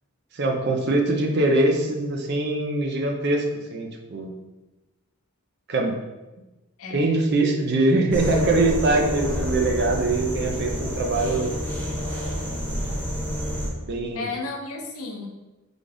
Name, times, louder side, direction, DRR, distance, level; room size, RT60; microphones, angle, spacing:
voice 1, 0.3-3.4 3.7-4.3 5.7-5.9 6.9-11.5 13.8-14.3, right 2 dB, 50° right, 2 dB, 0.4 m, -23 dB
voice 2, 6.8-7.2 14.1-15.3, left 3 dB, 80° left, 2 dB, 0.6 m, -33 dB
sound 1, 8.1-13.7, equal, 5° left, 0.9 m, -28 dB
3.8 x 2.3 x 3.3 m, 1.1 s
head